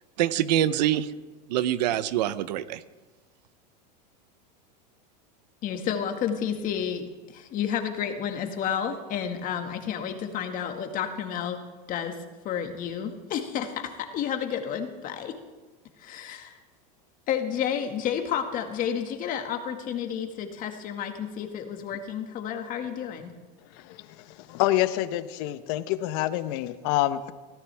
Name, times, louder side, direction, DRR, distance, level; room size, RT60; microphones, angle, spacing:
voice 1, 0.2-1.1 1.5-2.8, right 12 dB, 75° right, 15 dB, 0.9 m, -25 dB
voice 2, 5.6-11.6 11.9-15.3 16.0-16.6 17.3-23.3, left 8 dB, 40° left, 5 dB, 1.9 m, -31 dB
voice 3, 24.5-27.3, left 14 dB, 60° left, 12 dB, 1.0 m, -26 dB
24.0 x 15.5 x 3.5 m, 1.2 s
supercardioid pair, 125°, 21 cm